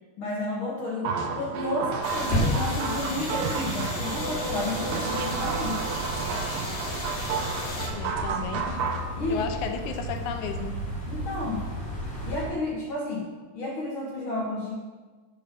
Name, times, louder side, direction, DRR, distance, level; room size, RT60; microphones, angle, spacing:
voice 1, 0.2-5.9 9.2-9.5 11.1-11.7 12.2-14.7, left 2 dB, 60° left, -3 dB, 1.4 m, -31 dB
sound 1, 1.0-9.0, right 5 dB, 85° right, 2.5 m, -32 dB
sound 2, 2.0-7.9, left 2 dB, 45° left, 1.6 m, -35 dB
sound 3, 2.1-12.4, right 1 dB, 15° left, 2.1 m, -33 dB
voice 2, 7.9-8.7 9.3-10.7, left 7 dB, 75° left, 5 dB, 2.0 m, -33 dB
6.9 x 5.1 x 6.7 m, 1.3 s
omnidirectional pair, 3.7 m